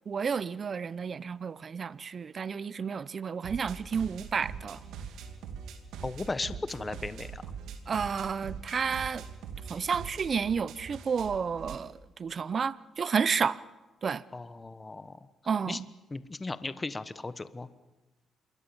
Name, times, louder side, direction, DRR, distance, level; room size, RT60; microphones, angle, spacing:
voice 1, 0.1-4.8 7.9-9.2 9.7-13.6 14.0-14.2 15.5-15.9, right 6 dB, 45° right, 0.7 m, -31 dB
sound 1, 3.4-11.8, right 6 dB, 85° right, 2.5 m, -43 dB
voice 2, 6.0-7.4 14.3-15.2 15.7-15.8 16.1-17.7, left 3 dB, 25° left, 1.2 m, -36 dB
27.0 x 22.0 x 7.2 m
cardioid pair, 90°, 0 cm